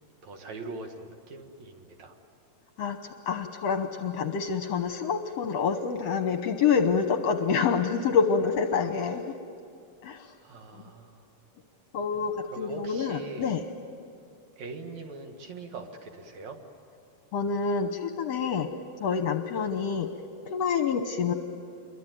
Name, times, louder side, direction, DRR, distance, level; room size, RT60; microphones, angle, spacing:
voice 1, 0.2-2.2 8.7-8.8 10.4-11.2 12.4-13.5 14.6-16.6, right 3 dB, 60° right, 4 dB, 3.1 m, -42 dB
voice 2, 2.8-9.3 10.0-10.3 10.8-10.9 11.9-13.6 17.3-18.7 19.0-20.1 20.5-21.3, left 6 dB, 65° left, 7 dB, 1.8 m, -27 dB
27.5 x 23.0 x 9.3 m, 2.4 s
omnidirectional pair, 3.8 m